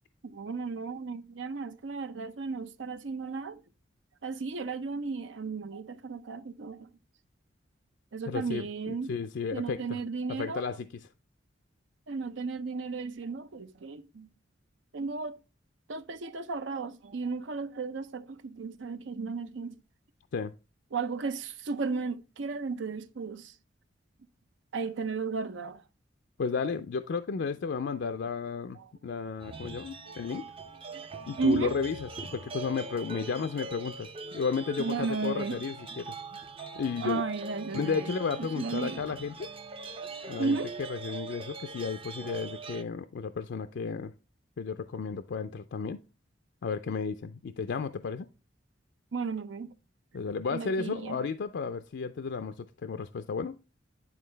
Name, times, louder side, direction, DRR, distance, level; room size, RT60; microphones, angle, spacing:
voice 1, 0.2-3.6 4.2-6.9 8.1-9.1 9.5-10.6 12.1-14.3 14.9-15.4 15.9-19.8 20.9-23.5 24.7-25.8 30.0-30.2 30.9-31.1 31.4-31.7 34.8-35.5 37.0-38.1 38.6-39.0 40.4-40.7 49.1-49.7 50.5-51.2, right 4 dB, 75° right, 0.6 m, -34 dB
voice 2, 8.3-10.0 10.3-11.1 20.3-20.5 26.4-30.5 31.3-34.1 34.3-36.4 36.8-37.2 37.7-39.5 40.3-44.1 44.6-46.0 46.6-48.3 50.1-53.6, left 5 dB, 65° left, 0.4 m, -33 dB
sound 1, 29.4-42.8, right 3 dB, 30° right, 0.6 m, -42 dB
9.6 x 4.5 x 3.3 m
head